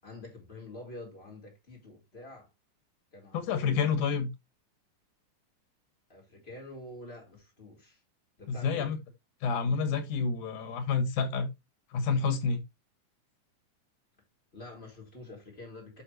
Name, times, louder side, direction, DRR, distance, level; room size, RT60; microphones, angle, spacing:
voice 1, 0.0-2.5 3.1-4.2 6.1-8.0 8.4-8.9 14.5-16.0, left 2 dB, 20° left, 4.5 m, -47 dB
voice 2, 3.3-4.3 8.5-9.0 9.4-11.5 11.9-12.6, left 5 dB, 85° left, 3.1 m, -29 dB
11.0 x 5.7 x 3.1 m
omnidirectional pair, 3.4 m